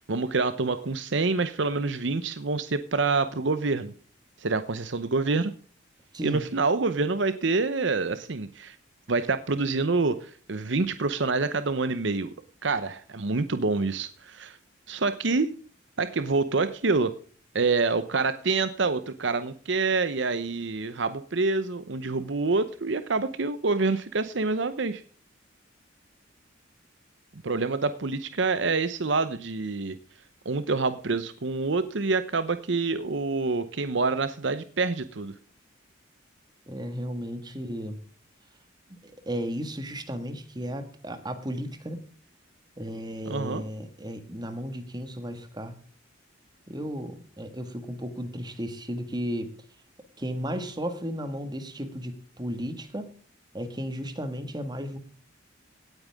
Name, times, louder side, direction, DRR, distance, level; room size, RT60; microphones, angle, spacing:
voice 1, 0.0-3.9 4.4-5.5 6.2-8.8 9.1-12.3 12.6-14.6 14.9-15.5 16.0-17.1 17.5-25.0 27.4-30.0 30.4-35.4 43.3-43.6, right 3 dB, 65° right, 12 dB, 0.8 m, -27 dB
voice 2, 36.7-38.0 39.2-42.0 42.8-45.7 46.7-49.5 50.2-53.1 53.5-55.0, equal, 20° right, 8 dB, 1.8 m, -34 dB
17.5 x 9.1 x 3.6 m, 0.43 s
head